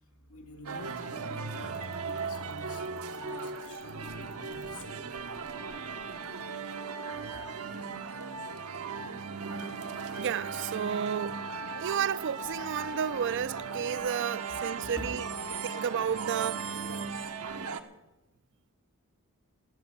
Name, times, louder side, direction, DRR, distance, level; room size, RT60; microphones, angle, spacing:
voice 1, 0.2-5.2 7.2-7.5 14.5-15.6, left 1 dB, 75° left, 2.3 m, -48 dB
sound 1, 0.7-17.8, right 5 dB, 80° right, 1.0 m, -37 dB
voice 2, 10.2-11.4 11.8-15.2 15.6-16.8, right 8 dB, 55° right, 0.4 m, -32 dB
13.0 x 7.9 x 9.7 m
head